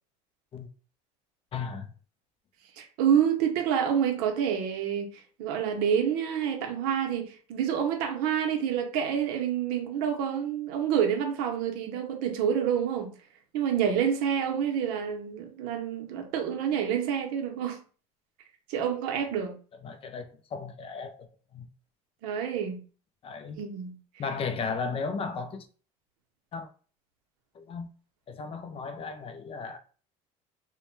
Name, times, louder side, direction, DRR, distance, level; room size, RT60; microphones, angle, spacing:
voice 1, 1.5-1.9 19.8-21.7 23.2-23.6 24.2-25.7 26.5-26.7 27.5-27.9 28.3-29.8, left 5 dB, 35° left, 0.4 m, -35 dB
voice 2, 2.8-13.1 13.5-17.8 18.7-19.5 22.2-22.8 23.6-24.0, right 8 dB, 75° right, 0.7 m, -28 dB
2.1 x 2.1 x 3.0 m
supercardioid pair, 95°, 16 cm